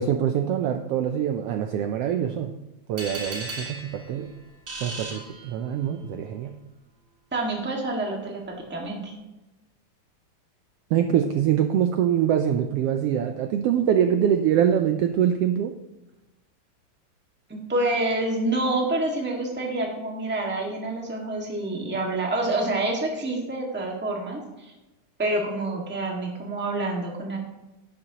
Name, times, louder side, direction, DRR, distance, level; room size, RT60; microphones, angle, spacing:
voice 1, 0.0-2.5 2.9-4.3 4.8-6.5 10.9-15.7, right 9 dB, 85° right, 7 dB, 1.3 m, -24 dB
sound 1, 3.0-6.0, right 2 dB, 30° right, 2.2 m, -37 dB
voice 2, 7.3-8.4 8.7-9.1 17.5-24.7 25.2-27.4, right 2 dB, 5° right, -1 dB, 1.0 m, -27 dB
11.5 x 11.0 x 2.9 m, 1.0 s
omnidirectional pair, 3.4 m